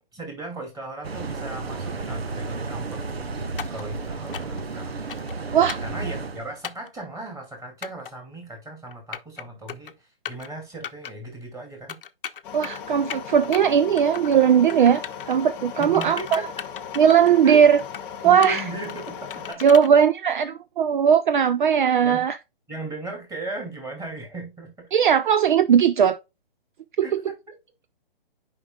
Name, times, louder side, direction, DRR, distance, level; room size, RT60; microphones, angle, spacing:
voice 1, 0.1-5.0 5.8-12.0 15.8-16.5 17.4-17.6 18.2-19.8 21.8-22.3 22.7-24.9 27.0-27.4, right 2 dB, 10° right, 2.7 m, -37 dB
sound 1, 1.0-6.6, right 3 dB, 90° right, 1.0 m, -32 dB
sound 2, 3.6-3.8 4.3-4.6 5.1-5.4 5.7-5.9 6.6-6.9 7.8-8.1 8.9-9.4 9.7-9.9 10.3-10.5 10.8-11.1 11.9-12.8 13.1-13.6 14.0-14.4 14.7-15.4 15.8-17.4 17.8-18.1 18.4-19.9, left 8 dB, 65° left, 0.8 m, -36 dB
sound 3, 12.4-19.5, left 8 dB, 5° left, 0.3 m, -37 dB
voice 2, 12.5-16.4 17.0-17.8 18.2-18.6 19.6-22.4 24.9-26.2 27.0-27.2, right 8 dB, 55° right, 0.5 m, -18 dB
9.7 x 5.2 x 2.3 m
hypercardioid pair, 140°, 30 cm